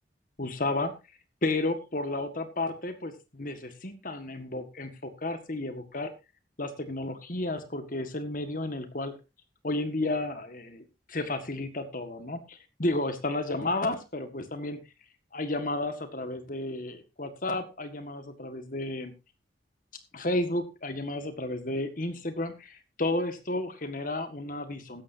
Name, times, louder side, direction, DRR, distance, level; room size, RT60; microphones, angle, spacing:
voice 1, 0.4-0.9 1.4-6.1 6.6-9.1 9.6-14.8 15.3-19.1 20.1-25.0, left 2 dB, 50° left, 9 dB, 1.7 m, -32 dB
15.0 x 12.0 x 2.7 m, 0.26 s
head